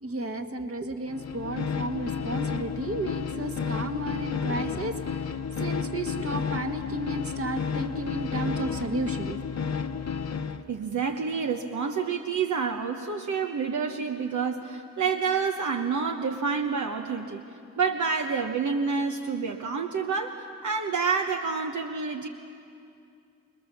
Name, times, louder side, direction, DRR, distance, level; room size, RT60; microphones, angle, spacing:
voice 1, 0.0-9.4, right 1 dB, 50° right, 5 dB, 1.8 m, -33 dB
sound 1, 1.1-10.6, left 6 dB, 60° left, 0.9 m, -32 dB
voice 2, 10.7-17.4 17.8-22.3, right 5 dB, 80° right, 4 dB, 1.0 m, -28 dB
27.5 x 20.0 x 7.2 m, 2.5 s
cardioid pair, 50°, 30 cm